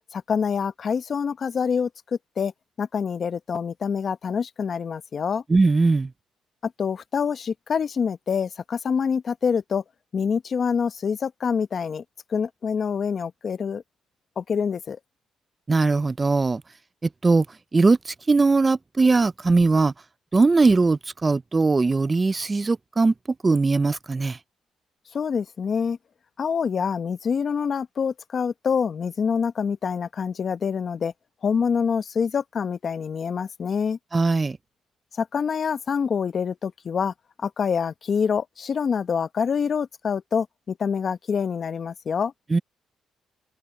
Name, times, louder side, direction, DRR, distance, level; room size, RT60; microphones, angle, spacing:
voice 1, 0.1-1.9 2.4-2.5 2.8-5.4 6.6-9.8 10.1-12.0 12.3-13.8 14.4-15.0 25.1-26.0 26.4-31.1 31.4-34.0 35.2-37.1 37.4-42.3, left 6 dB, 50° left, 1.0 m, -26 dB
voice 2, 5.5-6.1 15.7-16.6 17.0-17.5 17.7-19.9 20.3-23.1 23.4-24.4 34.1-34.6 42.5-42.6, right 3 dB, 25° right, 0.4 m, -20 dB
open air
cardioid pair, 90°, 0 cm